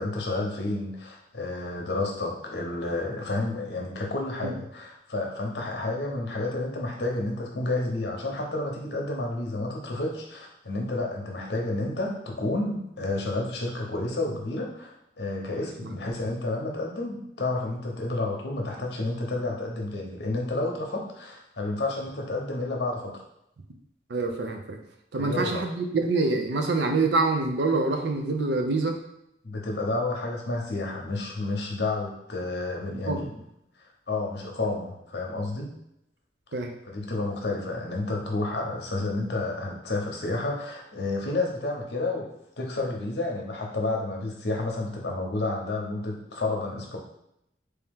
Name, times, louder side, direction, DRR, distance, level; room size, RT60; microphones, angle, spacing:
voice 1, 0.0-23.2 25.1-25.6 29.4-33.4 34.1-35.7 36.9-42.3 42.6-47.0, left 2 dB, 70° left, 0 dB, 0.8 m, -30 dB
voice 2, 24.1-24.8 25.1-29.0 33.1-33.2 36.5-36.7, right 3 dB, 75° right, 4 dB, 0.5 m, -25 dB
3.4 x 2.8 x 3.5 m, 0.79 s
head